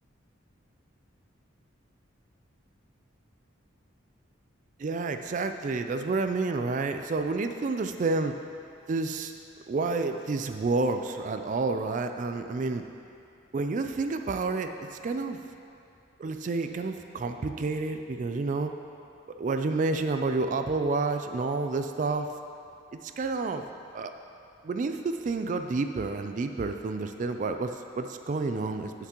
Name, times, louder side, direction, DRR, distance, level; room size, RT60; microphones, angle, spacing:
voice 1, 4.8-8.3 8.9-9.3 9.7-12.8 13.5-14.7 15.0-15.4 16.2-18.7 19.4-22.3 22.9-23.6 23.9-24.1 24.6-28.9, right 3 dB, 40° right, 7 dB, 0.3 m, -29 dB
16.0 x 5.9 x 2.9 m, 2.6 s
head